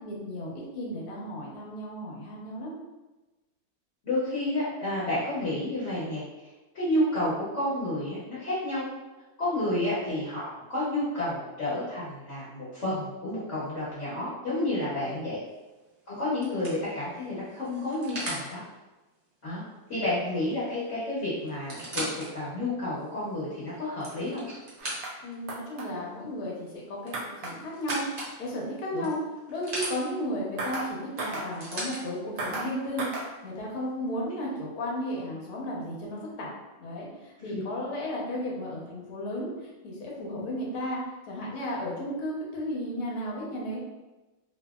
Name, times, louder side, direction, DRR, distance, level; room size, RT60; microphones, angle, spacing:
voice 1, 0.0-2.7 14.9-15.3 25.2-29.2 29.5-36.5 36.8-41.0 41.3-43.8, equal, 80° left, -3 dB, 1.3 m, -34 dB
voice 2, 4.0-6.2 6.7-8.9 9.4-15.4 16.1-18.6 19.4-19.6 19.9-24.4 28.9-29.1 37.4-37.6, left 1 dB, 55° left, -10 dB, 1.1 m, -30 dB
sound 1, 15.5-15.8 16.4-18.5 20.5-20.6 20.9-21.0 21.5-22.3 22.9-23.0 23.7-25.3 27.0-28.3 29.0-29.9 31.2-32.0 32.9-33.0, right 1 dB, 45° right, 0.5 m, -37 dB
sound 2, 24.8-25.1 25.5-25.9 27.1-27.5 27.9-28.3 30.6-30.9 31.2-31.5 32.4-32.7 33.0-33.3, right 2 dB, 75° right, 1.0 m, -34 dB
2.7 x 2.7 x 2.3 m, 1.1 s
omnidirectional pair, 1.6 m